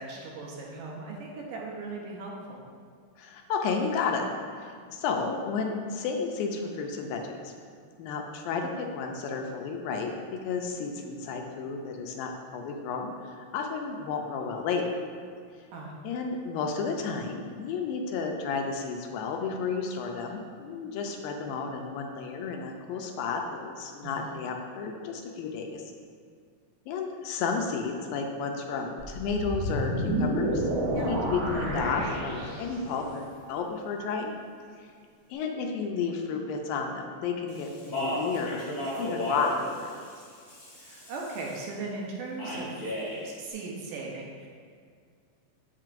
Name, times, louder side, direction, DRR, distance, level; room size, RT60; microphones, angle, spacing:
voice 1, 0.0-2.6 15.7-15.9 24.0-24.4 30.9-31.2 40.7-42.8 43.2-44.5, right 3 dB, 75° right, -2 dB, 2.3 m, -38 dB
voice 2, 3.2-4.2 4.6-7.5 8.0-14.8 16.0-25.8 26.9-34.3 34.8-34.9 35.3-38.7 39.0-39.9, left 5 dB, 85° left, 2 dB, 2.3 m, -32 dB
sound 1, 29.0-33.0, right 1 dB, 50° right, 1.2 m, -30 dB
Speech, 37.5-41.6 42.4-43.2, equal, 35° left, 0.6 m, -35 dB
7.6 x 7.4 x 2.6 m, 2.1 s
omnidirectional pair, 4.2 m